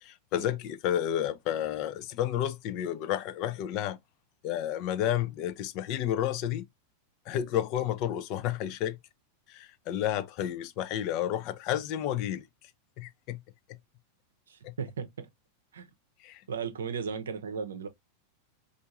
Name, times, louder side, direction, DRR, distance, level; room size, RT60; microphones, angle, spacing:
voice 1, 0.0-4.0 4.4-6.6 7.3-9.0 9.5-12.4 13.0-13.4 14.6-14.7 16.2-16.4, left 11 dB, 40° left, 0.4 m, -31 dB
voice 2, 14.5-15.3 15.7-15.9 16.5-17.9, right 6 dB, 65° right, 0.6 m, -36 dB
4.5 x 2.4 x 2.5 m
figure-of-eight pair, 90°, 0 cm